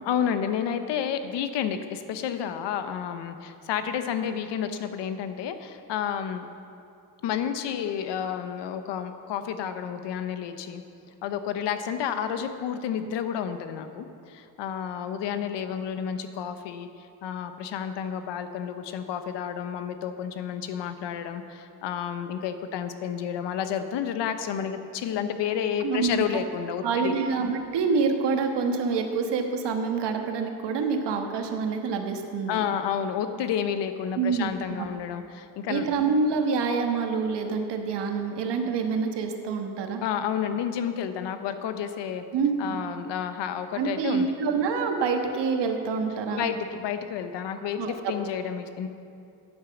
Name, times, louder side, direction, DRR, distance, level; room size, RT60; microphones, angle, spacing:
voice 1, 0.0-6.5 7.2-10.8 11.2-16.9 17.2-27.1 32.5-35.9 40.0-42.2 42.6-44.3 46.3-48.9, left 8 dB, 85° left, 9 dB, 1.0 m, -30 dB
voice 2, 25.8-26.4 26.8-32.6 34.1-34.5 34.8-34.9 35.7-40.0 42.3-42.8 43.8-46.5 47.8-47.9, right 5 dB, 80° right, 4 dB, 1.5 m, -27 dB
11.0 x 9.4 x 7.1 m, 2.5 s
cardioid pair, 95°, 41 cm